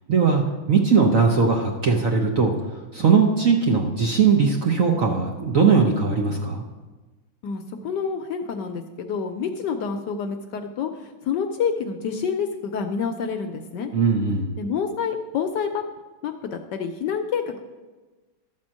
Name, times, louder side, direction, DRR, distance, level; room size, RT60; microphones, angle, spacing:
voice 1, 0.1-6.6 13.9-14.5, right 5 dB, 55° right, 1 dB, 0.9 m, -20 dB
voice 2, 7.4-13.9 14.6-15.8 16.2-17.6, left 6 dB, 70° left, 6 dB, 1.1 m, -28 dB
12.5 x 4.4 x 7.3 m, 1.3 s
omnidirectional pair, 2.2 m